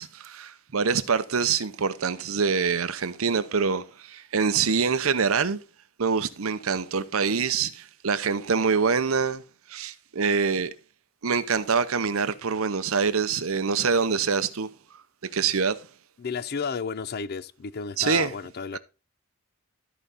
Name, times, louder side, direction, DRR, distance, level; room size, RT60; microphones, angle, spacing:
voice 1, 0.0-5.6 6.0-9.4 9.7-10.7 11.2-14.7 15.3-15.8 18.0-18.3, right 5 dB, 75° right, 0.8 m, -25 dB
voice 2, 16.2-18.8, left 5 dB, 45° left, 0.5 m, -32 dB
13.0 x 5.0 x 4.1 m
head